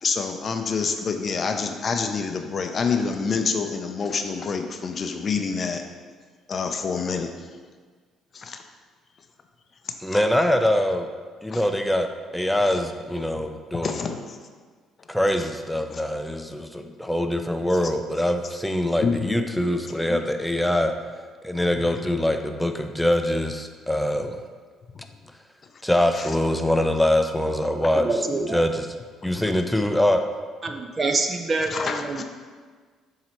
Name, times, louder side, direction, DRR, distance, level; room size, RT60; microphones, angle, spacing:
voice 1, 0.0-5.8 6.5-7.3 8.3-8.6 11.5-11.6 12.7-12.8 13.8-14.2 15.9-16.0 19.0-19.4 29.3-29.4 31.7-32.2, left 5 dB, 45° left, 5 dB, 0.5 m, -27 dB
voice 2, 10.0-11.1 11.4-12.1 12.3-14.0 15.1-20.9 21.4-24.4 25.8-28.1 28.5-28.9 29.2-30.2, left 1 dB, 5° left, 6 dB, 0.6 m, -23 dB
voice 3, 27.7-28.6 30.6-32.2, right 3 dB, 35° right, 5 dB, 0.6 m, -26 dB
7.4 x 2.9 x 4.4 m, 1.5 s
hypercardioid pair, 55°, 0 cm